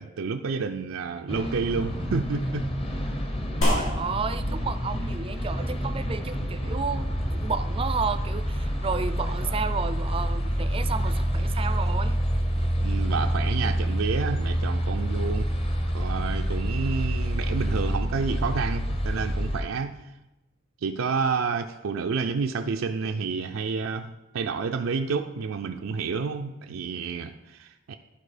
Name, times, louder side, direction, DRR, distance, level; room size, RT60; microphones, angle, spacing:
voice 1, 0.0-2.7 12.8-15.5 15.9-20.0 20.8-28.0, right 5 dB, 85° right, 5 dB, 0.4 m, -29 dB
sound 1, 1.3-19.6, equal, 30° left, 0.9 m, -27 dB
sound 2, 3.6-12.3, equal, 80° left, 2.3 m, -35 dB
voice 2, 3.6-12.2, right 5 dB, 25° right, 12 dB, 0.4 m, -32 dB
12.0 x 4.3 x 4.9 m, 0.99 s
head